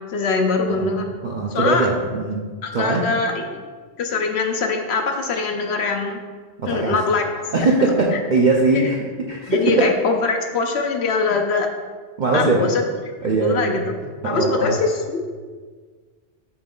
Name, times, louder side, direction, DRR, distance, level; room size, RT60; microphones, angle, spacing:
voice 1, 0.1-1.0 1.5-1.9 2.6-3.6 4.0-6.2 6.6-7.7 8.7-8.9 9.5-11.7 12.3-12.8 13.4-13.8 14.2-15.2, left 4 dB, 65° left, 3 dB, 0.8 m, -22 dB
voice 2, 0.7-2.4 2.7-3.1 6.6-7.0 7.5-9.0 9.3-9.9 12.2-12.7 13.2-13.8 14.2-14.8, right 3 dB, 50° right, -2 dB, 0.6 m, -20 dB
5.9 x 5.0 x 3.7 m, 1.5 s
omnidirectional pair, 1.2 m